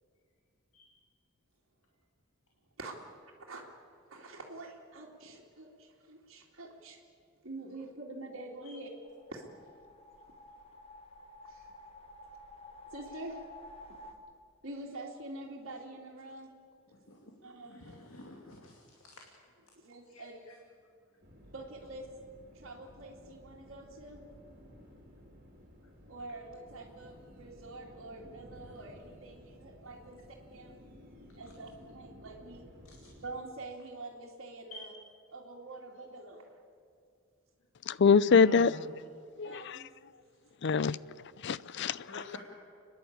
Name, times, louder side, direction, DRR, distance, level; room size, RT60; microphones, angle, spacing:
voice 1, 2.8-3.7 4.1-7.0 7.4-8.9 9.3-9.4 11.4-11.7 12.9-13.4 13.9-14.0 14.6-16.5 17.4-17.9 19.8-20.3 21.5-22.1 22.5-24.2 26.1-30.2 30.5-30.9 31.4-32.7 33.0-34.9 35.3-36.5 39.4-39.9, right 2 dB, 60° right, -5 dB, 2.4 m, -46 dB
sound 1, 9.0-14.1, left 2 dB, 30° left, 1.5 m, -52 dB
voice 2, 16.9-17.3 17.6-19.2 20.1-20.6 31.2-31.3 32.8-32.9 34.7-34.8 38.2-38.9 42.1-42.4, left 2 dB, 75° left, 0 dB, 2.3 m, -48 dB
sound 2, 21.2-33.4, equal, 45° right, 3.1 m, -55 dB
voice 3, 37.9-38.7 39.4-39.8 40.6-41.0 41.4-42.1, left 5 dB, 55° left, 19 dB, 0.5 m, -24 dB
30.0 x 11.0 x 8.7 m, 2.3 s
head